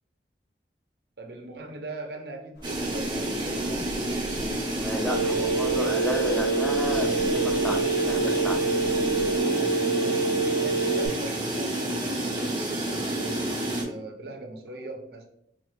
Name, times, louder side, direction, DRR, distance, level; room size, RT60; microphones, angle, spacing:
voice 1, 1.2-3.9 10.0-10.2 10.6-15.3, right 2 dB, 65° right, 3 dB, 0.7 m, -40 dB
sound 1, 2.5-9.4, equal, 85° left, 1.1 m, -44 dB
sound 2, 2.6-13.8, right 1 dB, 25° right, 0.7 m, -29 dB
voice 2, 4.8-8.6, equal, 5° left, 2 dB, 0.4 m, -32 dB
Telephone, 5.1-11.1, right 4 dB, 60° left, 0.8 m, -26 dB
4.3 x 2.3 x 3.1 m, 0.74 s
head